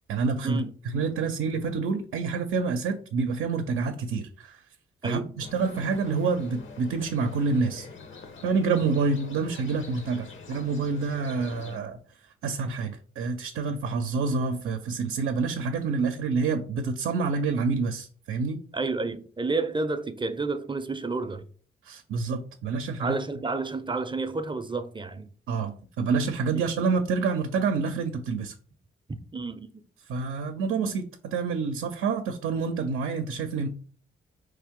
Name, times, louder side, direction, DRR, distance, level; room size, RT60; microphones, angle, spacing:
voice 1, 0.1-4.6 5.0-7.9 8.4-12.0 12.4-18.6 21.8-23.2 25.5-28.5 30.1-33.7, right 4 dB, 80° right, 0.6 m, -28 dB
sound 1, 5.4-11.8, left 4 dB, 65° left, 1.1 m, -45 dB
voice 2, 18.7-21.4 23.0-25.3 29.3-29.8, right 3 dB, 25° right, 0.5 m, -30 dB
4.5 x 3.3 x 3.6 m
cardioid pair, 65°, 21 cm